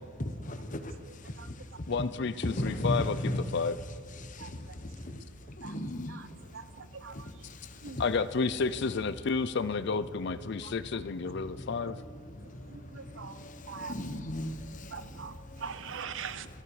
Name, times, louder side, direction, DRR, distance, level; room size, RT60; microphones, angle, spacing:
voice 1, 0.2-1.5 2.4-3.4 4.2-5.2 5.5-6.2 7.1-8.0 11.5-15.6 16.1-16.3, left 1 dB, 40° left, 8 dB, 1.1 m, -37 dB
voice 2, 1.9-3.8 8.0-12.0, left 4 dB, 55° left, 14 dB, 0.5 m, -31 dB
voice 3, 6.5-7.3 7.8-8.0 10.6-10.7 12.7-13.4 13.7-14.0 14.9-16.5, right 6 dB, 65° right, 13 dB, 0.6 m, -42 dB
18.5 x 14.0 x 4.9 m, 2.2 s
head